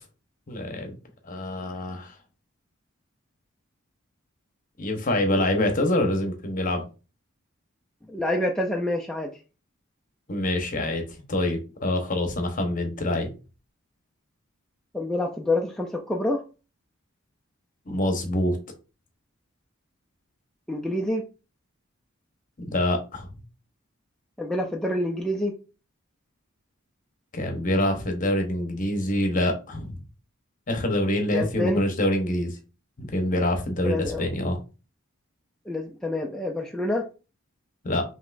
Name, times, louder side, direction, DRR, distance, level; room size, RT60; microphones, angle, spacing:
voice 1, 0.5-1.0 1.3-2.1 4.8-6.8 10.3-11.0 11.3-13.3 17.9-18.6 22.6-23.3 27.3-30.0 30.7-32.6 33.0-34.6 37.8-38.0, left 1 dB, 40° left, 4 dB, 0.9 m, -25 dB
voice 2, 8.1-9.3 14.9-16.4 20.7-21.2 24.4-25.5 31.3-31.8 33.8-34.2 35.7-37.1, left 1 dB, 5° left, -1 dB, 0.4 m, -27 dB
5.3 x 3.0 x 2.5 m, 0.33 s
head